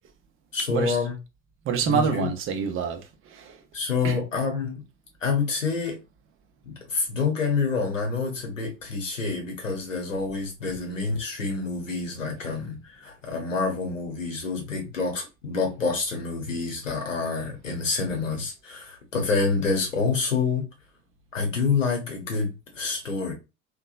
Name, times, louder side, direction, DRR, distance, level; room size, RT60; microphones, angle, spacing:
voice 1, 0.5-1.1 1.9-2.3 3.7-4.8 5.2-6.0 6.6-20.7 21.3-23.3, left 4 dB, 85° left, 0.9 m, -27 dB
voice 2, 1.6-3.6 4.0-4.2, right 6 dB, 35° right, 0.6 m, -27 dB
2.9 x 2.3 x 2.4 m
figure-of-eight pair, 65°, 37 cm